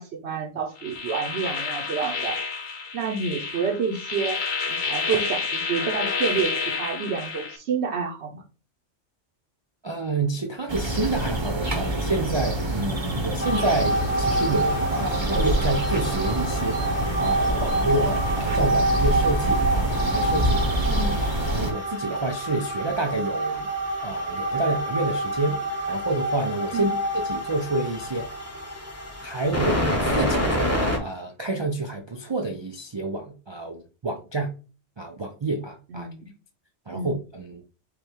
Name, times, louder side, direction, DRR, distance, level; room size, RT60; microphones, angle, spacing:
voice 1, 0.0-2.4 2.9-4.4 4.7-8.4 20.9-21.2 26.7-26.9 35.9-36.3 36.9-37.1, right 6 dB, 65° right, 1.0 m, -29 dB
sound 1, 0.8-7.6, left 4 dB, 50° left, 0.8 m, -29 dB
voice 2, 9.8-16.8 17.2-20.8 21.5-23.7 24.0-25.6 25.9-28.3 29.2-34.5 35.0-36.1 36.9-37.6, right 2 dB, 45° right, 0.3 m, -28 dB
sound 2, 10.7-21.7, right 1 dB, 25° right, 0.8 m, -26 dB
sound 3, 13.4-31.0, right 1 dB, 15° left, 1.0 m, -27 dB
5.0 x 2.3 x 4.5 m
omnidirectional pair, 1.2 m